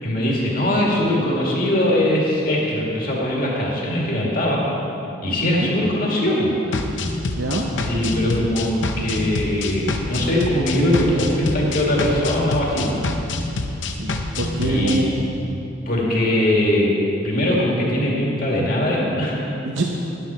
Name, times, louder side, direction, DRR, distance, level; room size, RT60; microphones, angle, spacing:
voice 1, 0.0-4.6 5.2-6.5 7.9-13.0 14.6-15.0 15.9-16.9 17.2-19.4, left 1 dB, 45° left, -4 dB, 2.1 m, -21 dB
sound 1, 6.7-15.0, left 2 dB, 60° left, 0.7 m, -26 dB
voice 2, 7.3-7.7 14.0-15.1 19.6-19.8, right 2 dB, 60° right, 0 dB, 0.7 m, -25 dB
11.0 x 9.5 x 4.3 m, 2.9 s
head